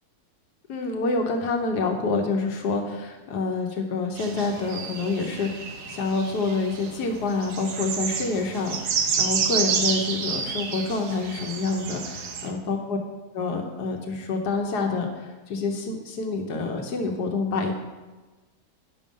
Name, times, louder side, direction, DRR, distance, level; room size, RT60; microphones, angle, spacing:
voice 1, 0.7-13.0 13.3-17.7, left 3 dB, 90° left, 3 dB, 1.5 m, -27 dB
sound 1, 4.2-12.5, right 6 dB, 80° right, 1.4 m, -30 dB
9.5 x 6.3 x 5.3 m, 1.2 s
omnidirectional pair, 1.7 m